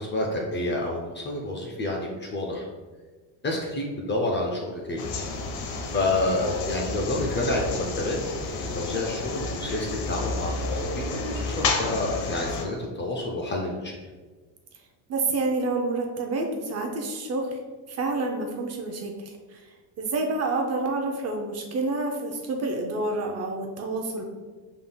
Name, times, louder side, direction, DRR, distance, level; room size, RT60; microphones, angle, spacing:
voice 1, 0.0-2.7 3.4-5.1 5.9-8.2 8.5-14.0, left 2 dB, 25° left, -1 dB, 0.4 m, -29 dB
sound 1, 5.0-12.6, left 3 dB, 85° left, 0.8 m, -30 dB
voice 2, 15.1-17.6 17.9-19.1 19.5-19.6 20.0-24.2, right 3 dB, 35° right, 2 dB, 0.5 m, -28 dB
5.3 x 3.6 x 2.2 m, 1.3 s
cardioid pair, 135°, 46 cm